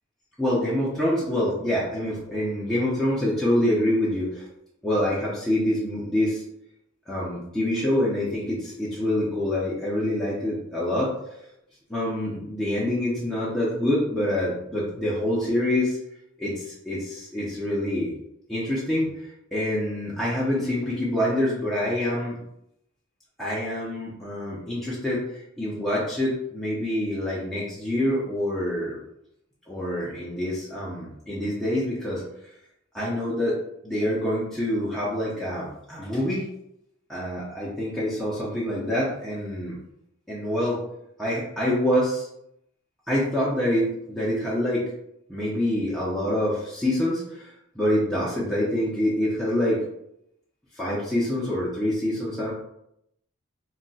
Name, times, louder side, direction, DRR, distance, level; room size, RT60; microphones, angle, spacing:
voice 1, 0.4-4.5 4.8-6.4 7.1-11.1 11.9-16.0 16.4-18.1 18.5-22.4 23.4-29.0 29.7-32.2 32.9-33.6 33.8-36.5 37.1-39.8 40.3-40.8 41.2-42.3 43.1-44.8 45.3-49.8 50.7-52.5, left 1 dB, ahead, -8 dB, 0.5 m, -26 dB
2.3 x 2.1 x 3.8 m, 0.79 s
head